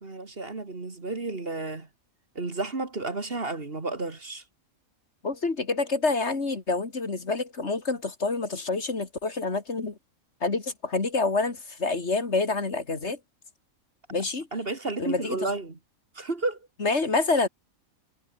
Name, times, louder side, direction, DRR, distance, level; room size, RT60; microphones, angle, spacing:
voice 1, 0.0-1.9 2.4-4.4 14.5-15.8 16.2-16.6, right 3 dB, 45° right, 2.5 m, -32 dB
voice 2, 5.2-10.0 10.4-13.2 14.1-14.5 15.0-15.4 16.8-17.5, left 3 dB, 55° left, 2.6 m, -27 dB
omnidirectional pair, 1.4 m